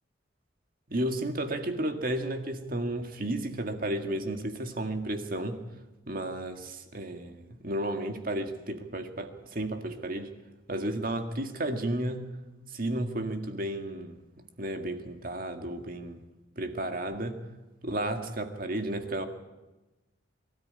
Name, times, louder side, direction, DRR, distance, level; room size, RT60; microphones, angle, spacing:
voice 1, 0.9-5.6 6.1-10.3 10.7-12.2 12.7-16.2 16.6-17.4 17.8-19.3, right 1 dB, 50° right, 6 dB, 1.9 m, -33 dB
23.0 x 13.5 x 9.6 m, 1.1 s
head